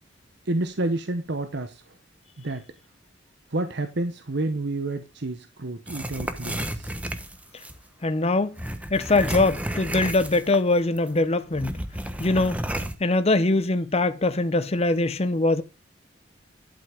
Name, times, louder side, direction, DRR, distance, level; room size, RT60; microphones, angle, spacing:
voice 1, 0.5-1.8 2.4-2.6 3.5-6.9, right 2 dB, 65° right, 1.0 m, -29 dB
sound 1, 5.9-7.8 8.6-10.7 11.0-11.1 11.5-13.0, right 1 dB, 10° right, 1.1 m, -32 dB
voice 2, 8.0-8.5 8.9-11.7 12.2-12.6 13.0-15.6, left 2 dB, 35° left, 0.8 m, -22 dB
11.5 x 5.7 x 5.0 m
head